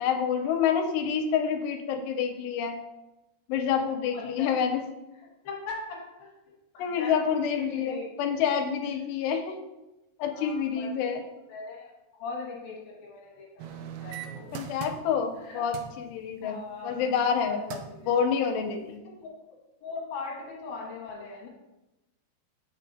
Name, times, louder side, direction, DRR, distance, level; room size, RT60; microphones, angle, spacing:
voice 1, 0.0-2.8 3.5-4.8 6.8-9.6 10.2-11.2 14.5-19.0, left 7 dB, 90° left, 4 dB, 2.8 m, -28 dB
voice 2, 4.1-4.6 5.4-6.3 6.7-7.1 7.6-8.1 10.3-10.9 11.5-14.6 15.4-15.6 16.4-17.1 17.5-18.1 19.2-19.3 19.8-21.5, left 4 dB, 65° left, -3 dB, 2.8 m, -40 dB
sound 1, 13.6-15.4 15.7-16.0 17.3-17.4 17.7-18.0 18.6-18.7, right 9 dB, 85° right, 2.2 m, -39 dB
7.4 x 6.8 x 2.6 m, 0.99 s
omnidirectional pair, 4.9 m